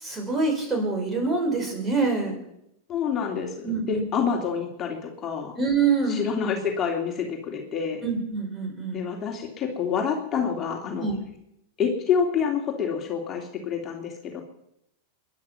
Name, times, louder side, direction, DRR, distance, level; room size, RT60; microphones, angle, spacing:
voice 1, 0.0-2.4 3.6-4.0 5.6-6.3 8.0-9.0 11.0-11.2, right 4 dB, 20° right, 2 dB, 5.7 m, -25 dB
voice 2, 2.9-5.6 6.1-8.0 8.9-11.1 11.8-14.4, left 6 dB, 30° left, 1 dB, 3.0 m, -27 dB
22.0 x 11.0 x 5.9 m, 0.80 s
hypercardioid pair, 110°, 0 cm